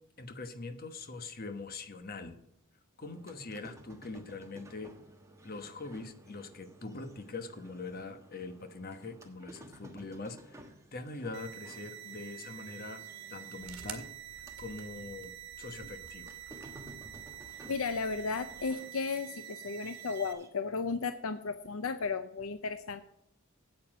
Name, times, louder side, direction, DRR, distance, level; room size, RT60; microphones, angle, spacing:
voice 1, 0.2-2.4 3.0-4.9 5.4-10.6 10.9-13.0 13.3-14.1 14.6-16.3, left 3 dB, 45° left, 8 dB, 1.1 m, -43 dB
sound 1, 3.0-14.9 15.2-20.5, right 1 dB, 15° right, 1.3 m, -55 dB
sound 2, 11.3-20.3, right 11 dB, 55° right, 1.1 m, -47 dB
sound 3, 13.6-18.7, right 6 dB, 70° right, 2.0 m, -52 dB
voice 2, 17.7-23.0, left 4 dB, 70° left, 11 dB, 0.6 m, -34 dB
8.8 x 8.5 x 6.0 m, 0.77 s
head